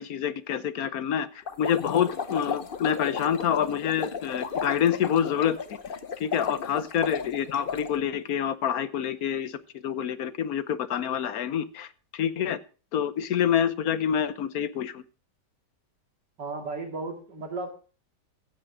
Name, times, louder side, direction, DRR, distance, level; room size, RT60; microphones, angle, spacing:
voice 1, 0.0-5.6 6.2-12.6 12.9-15.0, left 9 dB, 60° left, 15 dB, 1.2 m, -27 dB
sound 1, 1.5-7.9, left 6 dB, 40° left, 0.9 m, -34 dB
voice 2, 16.4-17.7, right 3 dB, 80° right, 4 dB, 3.1 m, -35 dB
15.5 x 8.5 x 4.8 m, 0.36 s
omnidirectional pair, 1.8 m